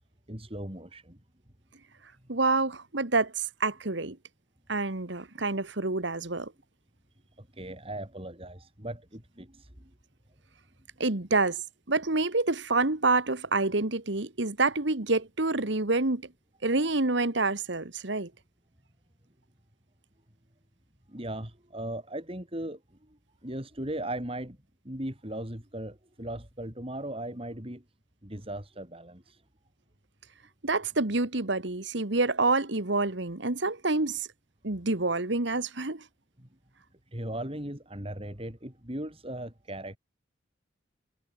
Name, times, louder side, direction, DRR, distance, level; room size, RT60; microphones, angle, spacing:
voice 1, 0.3-1.2 7.4-9.9 21.1-22.8 23.1-24.6 24.8-27.8 28.2-29.4 36.4-36.5 37.1-40.0, right 1 dB, 30° right, 4.4 m, -38 dB
voice 2, 2.3-4.2 4.7-6.5 11.0-11.6 11.9-16.3 16.6-18.3 30.6-34.3 34.6-36.0, right 3 dB, 60° right, 1.7 m, -27 dB
head